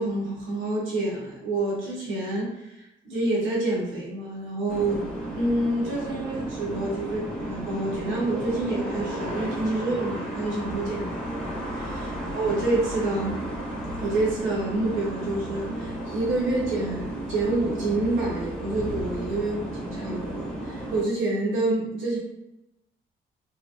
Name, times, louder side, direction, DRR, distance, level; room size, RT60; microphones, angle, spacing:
voice 1, 0.0-5.1 5.4-12.0 12.3-13.4 14.0-22.2, right 2 dB, 90° right, -4 dB, 1.0 m, -28 dB
sound 1, 4.7-21.0, right 1 dB, 5° left, 0.8 m, -33 dB
3.2 x 2.4 x 2.4 m, 0.91 s
cardioid pair, 90°, 20 cm